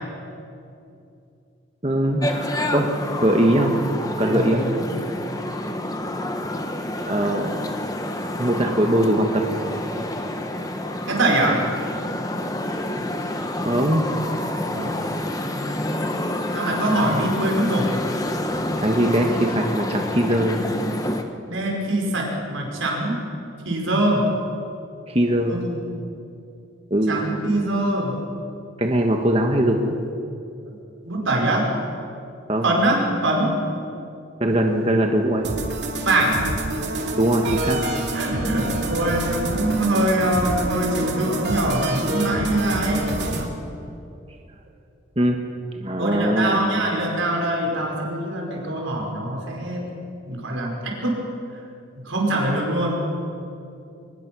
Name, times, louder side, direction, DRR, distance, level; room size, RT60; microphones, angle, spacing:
voice 1, 1.8-2.9 3.2-3.7 4.2-4.6 7.1-7.7 8.4-9.4 13.6-14.1 18.8-20.6 25.1-25.6 26.9-27.2 28.8-29.9 32.5-32.7 34.4-35.5 37.2-37.8 45.2-45.4 45.7-46.6, right 1 dB, 30° right, 2 dB, 1.3 m, -21 dB
sound 1, 2.2-21.2, left 1 dB, 20° left, 1.2 m, -28 dB
voice 2, 4.2-4.8 11.1-11.6 14.7-14.9 16.5-17.9 21.5-23.2 23.6-24.3 25.5-25.8 27.1-28.2 30.6-30.7 31.0-31.7 32.6-33.6 36.0-36.4 38.1-43.1 46.0-49.9 50.3-51.2 52.0-53.0, right 1 dB, 90° right, 0 dB, 5.3 m, -23 dB
sound 2, 35.4-43.5, right 2 dB, 60° right, 2.7 m, -27 dB
23.0 x 20.5 x 6.2 m, 2.6 s
head